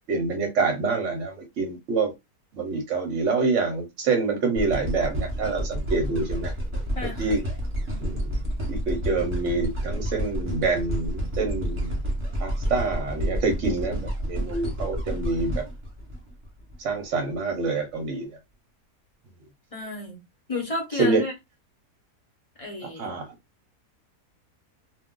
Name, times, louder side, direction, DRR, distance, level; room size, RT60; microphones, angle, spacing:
voice 1, 0.1-2.1 2.5-6.5 7.2-7.4 8.0-8.3 8.7-12.0 12.4-15.6 16.8-18.3 21.0-21.2 22.8-23.3, right 3 dB, 60° right, 0.9 m, -26 dB
sound 1, 4.6-16.8 17.3-17.4, equal, 20° right, 1.1 m, -30 dB
voice 2, 6.9-7.4 19.7-20.2 20.5-21.3 22.6-23.1, left 2 dB, 30° left, 0.8 m, -32 dB
2.4 x 2.3 x 3.7 m
omnidirectional pair, 1.7 m